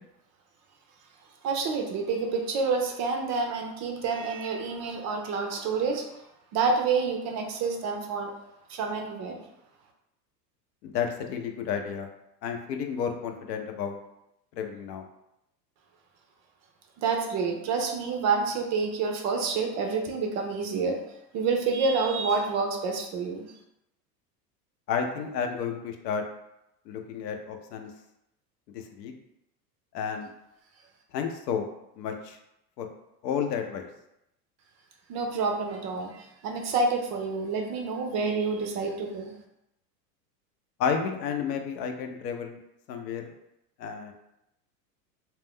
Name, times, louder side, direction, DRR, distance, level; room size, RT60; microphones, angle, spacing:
voice 1, 1.4-6.2 6.5-8.3 8.7-9.4 17.0-21.0 21.3-23.5 35.1-39.3, right 4 dB, 35° right, 3 dB, 0.4 m, -28 dB
voice 2, 10.8-12.1 12.4-14.0 14.6-15.1 24.9-26.2 26.9-27.9 29.0-29.1 29.9-30.3 31.1-31.7 32.0-32.4 32.8-32.9 33.2-33.9 40.8-42.6 42.9-43.3 43.8-44.1, left 7 dB, 80° left, 5 dB, 0.6 m, -31 dB
2.4 x 2.1 x 3.5 m, 0.84 s
hypercardioid pair, 100°, 49 cm